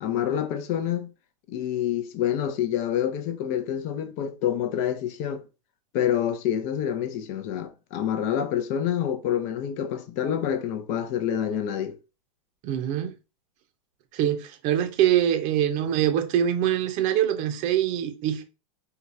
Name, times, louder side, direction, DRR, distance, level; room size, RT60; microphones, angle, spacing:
voice 1, 0.0-1.1 1.5-5.4 5.9-12.0, left 9 dB, 45° left, 0.5 m, -27 dB
voice 2, 12.6-13.1 14.1-18.4, right 10 dB, 45° right, 0.7 m, -24 dB
4.5 x 2.2 x 2.6 m
hypercardioid pair, 100°, 18 cm